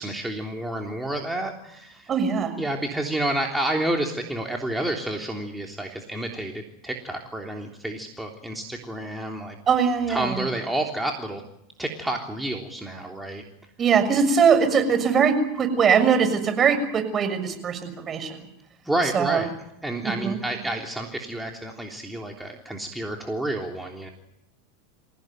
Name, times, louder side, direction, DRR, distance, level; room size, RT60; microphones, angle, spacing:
voice 1, 0.0-2.1 2.6-9.6 10.1-11.4 11.8-13.4 18.8-19.5 19.8-24.1, right 1 dB, 5° right, 1 dB, 3.3 m, -29 dB
voice 2, 2.1-2.5 9.7-10.5 13.8-18.5 19.1-19.4 20.0-20.4, right 6 dB, 30° right, 10 dB, 6.5 m, -21 dB
27.0 x 16.5 x 9.4 m, 0.83 s
hypercardioid pair, 95°, 0 cm